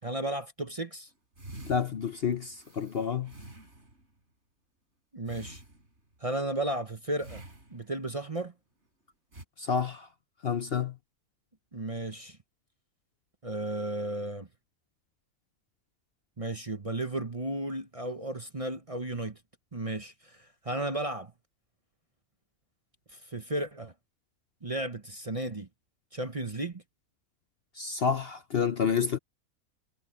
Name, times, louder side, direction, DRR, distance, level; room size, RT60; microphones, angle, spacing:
voice 1, 0.0-1.1 5.1-5.6 6.2-7.4 7.7-8.5 11.7-12.4 13.4-14.5 16.4-19.4 19.7-21.3 23.1-23.9 24.6-25.7 26.1-26.8, right 2 dB, 25° right, 0.9 m, -34 dB
sound 1, 1.4-4.1 5.3-6.2 7.2-8.1 9.3-9.4, right 1 dB, 50° right, 6.0 m, -48 dB
voice 2, 1.7-3.3 9.6-10.1 10.4-10.9 27.8-29.2, left 6 dB, 50° left, 0.9 m, -29 dB
omnidirectional pair, 1.5 m